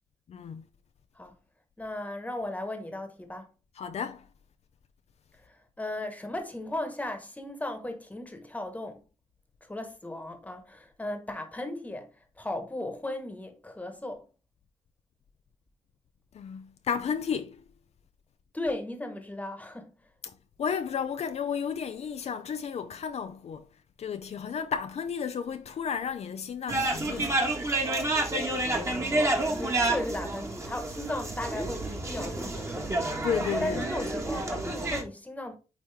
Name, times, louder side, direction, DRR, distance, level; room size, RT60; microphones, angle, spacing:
voice 1, 0.3-0.6 3.7-4.3 16.3-17.6 20.2-20.3 20.6-23.7 24.0-27.4 33.2-33.9, left 7 dB, 60° left, 0.5 m, -33 dB
voice 2, 1.8-3.5 5.4-9.0 9.6-12.1 12.4-14.2 18.5-19.9 28.7-32.9 33.6-35.6, left 1 dB, 10° left, 1.3 m, -36 dB
sound 1, 26.7-35.0, right 2 dB, 25° right, 1.5 m, -29 dB
8.9 x 3.0 x 3.5 m
cardioid pair, 100°, 12 cm